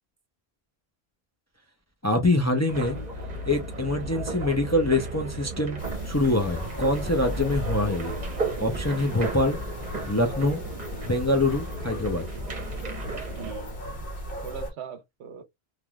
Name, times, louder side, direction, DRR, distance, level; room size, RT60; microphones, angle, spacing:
voice 1, 2.0-3.0 3.5-5.8 6.0-8.1 8.6-9.6 10.1-10.6 11.0-12.3, left 2 dB, 20° left, 0.4 m, -24 dB
sound 1, 2.7-13.5, right 2 dB, 45° right, 1.0 m, -34 dB
sound 2, 5.8-14.7, equal, 60° left, 1.3 m, -37 dB
voice 2, 13.3-14.1 14.4-15.4, right 8 dB, 85° right, 0.9 m, -41 dB
3.2 x 2.6 x 2.2 m
omnidirectional pair, 1.1 m